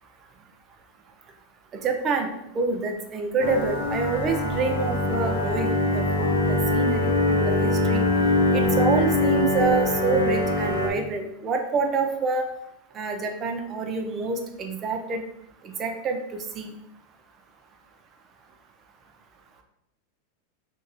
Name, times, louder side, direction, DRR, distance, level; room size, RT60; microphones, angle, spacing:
voice 1, 1.7-2.3 2.5-8.1 8.5-12.4 12.9-15.2 15.6-16.2 16.5-16.7, right 4 dB, 30° right, 4 dB, 0.5 m, -27 dB
sound 1, 3.4-10.9, left 2 dB, 80° left, 0.8 m, -23 dB
3.1 x 2.6 x 3.8 m, 0.80 s
supercardioid pair, 130°, 0 cm